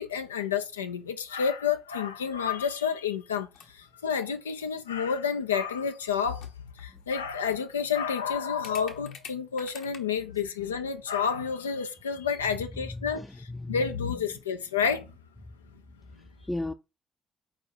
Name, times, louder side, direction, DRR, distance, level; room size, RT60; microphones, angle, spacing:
voice 1, 0.0-3.5 3.7-6.5 6.8-13.2 13.7-15.1, left 7 dB, 90° left, 0.5 m, -29 dB
sound 1, 1.8-1.9 2.8-3.2 3.4-3.8 4.5-5.0 6.1-6.2 6.4-7.0 7.4-7.5 7.8-8.0 8.6-10.0, left 7 dB, 70° left, 1.0 m, -48 dB
voice 2, 12.3-14.3 15.5-15.6 16.2-16.7, left 2 dB, 15° left, 0.5 m, -37 dB
4.9 x 4.7 x 4.4 m
figure-of-eight pair, 40°, 0 cm